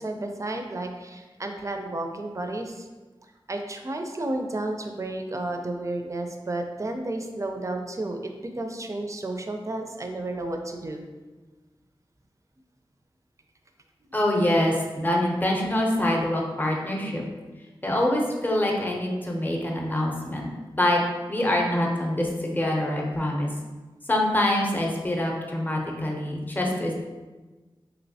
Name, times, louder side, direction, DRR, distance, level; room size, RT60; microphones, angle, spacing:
voice 1, 0.0-2.9 3.2-11.0 14.0-14.1, right 2 dB, 35° right, 4 dB, 0.4 m, -32 dB
voice 2, 14.1-17.2 17.8-20.5 20.8-21.0 21.3-23.5 24.1-26.9, left 1 dB, 20° left, -1 dB, 0.6 m, -25 dB
3.0 x 2.8 x 2.7 m, 1.2 s
wide cardioid pair, 55°, 9 cm